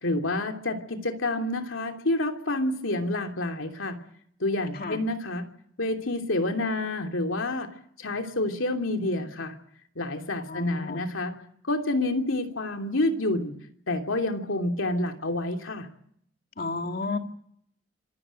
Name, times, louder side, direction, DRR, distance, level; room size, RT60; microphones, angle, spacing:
voice 1, 0.0-4.0 4.4-5.5 5.8-7.7 8.0-9.5 9.9-11.4 11.7-13.5 13.9-15.9, left 2 dB, 90° left, 4 dB, 3.0 m, -28 dB
voice 2, 10.5-11.1 16.6-17.2, left 3 dB, 50° left, 5 dB, 2.3 m, -32 dB
26.5 x 14.5 x 9.1 m, 0.68 s
head